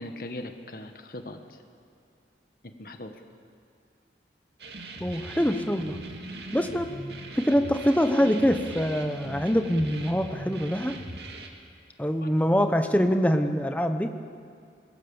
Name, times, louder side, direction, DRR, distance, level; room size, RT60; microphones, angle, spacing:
voice 1, 0.0-1.6 2.6-3.1 12.2-12.3, left 1 dB, 55° left, 6 dB, 1.5 m, -40 dB
sound 1, 4.6-11.5, right 2 dB, 70° right, 2.2 m, -40 dB
voice 2, 5.0-6.0 6.5-6.9 7.4-10.9 12.0-14.1, equal, 10° left, 6 dB, 1.0 m, -24 dB
25.5 x 21.0 x 7.2 m, 2.3 s
head